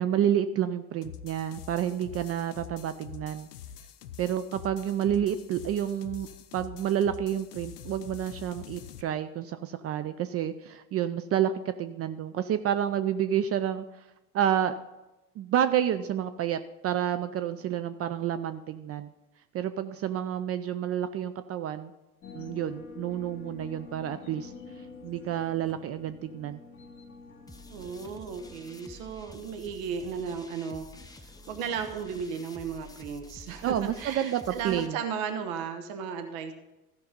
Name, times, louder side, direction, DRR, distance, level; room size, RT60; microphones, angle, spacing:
voice 1, 0.0-3.5 4.2-6.3 6.5-14.0 14.3-14.8 15.4-19.1 19.5-21.9 22.3-24.5 25.0-26.6 33.6-35.0, right 10 dB, 35° right, 11 dB, 0.5 m, -29 dB
sound 1, 1.0-9.0, left 8 dB, 85° left, 0.6 m, -45 dB
sound 2, 22.2-32.2, left 4 dB, 30° left, 2.3 m, -48 dB
sound 3, 27.5-34.9, left 2 dB, 10° left, 0.8 m, -49 dB
voice 2, 27.7-31.2 31.5-36.5, right 6 dB, 65° right, 7 dB, 1.3 m, -35 dB
14.5 x 5.3 x 5.2 m, 1.0 s
figure-of-eight pair, 70°, 45 cm